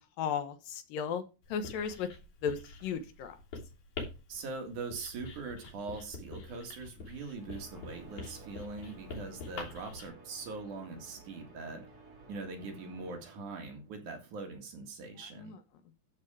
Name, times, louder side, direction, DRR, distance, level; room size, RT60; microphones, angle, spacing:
voice 1, 0.2-1.2 1.5-2.1 2.4-3.4 15.3-15.6, left 7 dB, 80° left, 8 dB, 2.9 m, -35 dB
Writing, 1.4-10.1, left 3 dB, 60° left, 4.4 m, -46 dB
voice 2, 4.3-11.8 12.3-15.6, right 3 dB, 65° right, 3 dB, 3.3 m, -42 dB
sound 1, 7.0-13.9, right 3 dB, 30° right, 3.3 m, -54 dB
12.5 x 5.4 x 4.9 m, 0.30 s
omnidirectional pair, 4.0 m